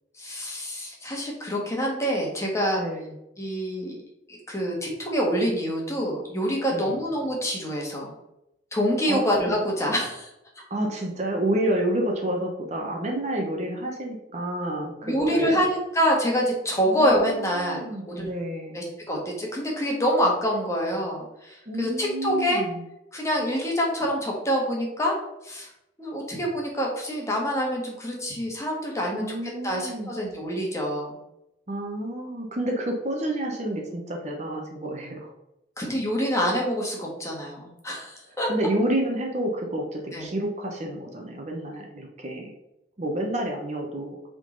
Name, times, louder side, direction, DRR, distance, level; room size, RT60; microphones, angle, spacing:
voice 1, 0.2-2.8 3.4-4.0 4.3-8.1 8.7-10.3 15.0-18.3 18.7-22.6 23.1-25.2 25.4-25.7 26.0-29.3 29.6-31.2 35.8-38.5 40.1-40.3, equal, 15° left, -2 dB, 1.6 m, -26 dB
voice 2, 2.8-3.1 6.7-6.9 9.1-9.2 10.7-15.6 16.9-18.8 21.7-22.8 29.1-30.1 31.7-35.3 38.5-42.5 43.0-44.2, right 1 dB, 40° right, 1 dB, 1.0 m, -29 dB
8.0 x 3.8 x 3.9 m, 0.86 s
head